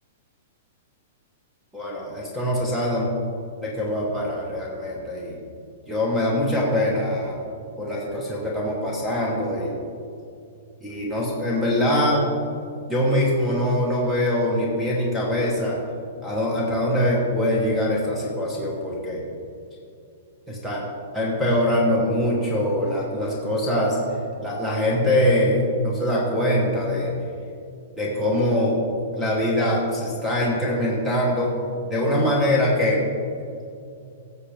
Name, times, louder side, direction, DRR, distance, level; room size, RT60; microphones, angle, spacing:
voice 1, 1.7-3.1 3.6-5.4 5.9-7.4 7.8-9.7 10.8-12.2 12.8-15.8 16.2-19.3 20.5-20.8 21.1-24.0 24.4-27.1 28.0-28.8 29.1-31.5 31.8-33.0, left 1 dB, ahead, -4 dB, 1.2 m, -23 dB
16.0 x 6.4 x 3.5 m, 2.5 s
hypercardioid pair, 165°, 0 cm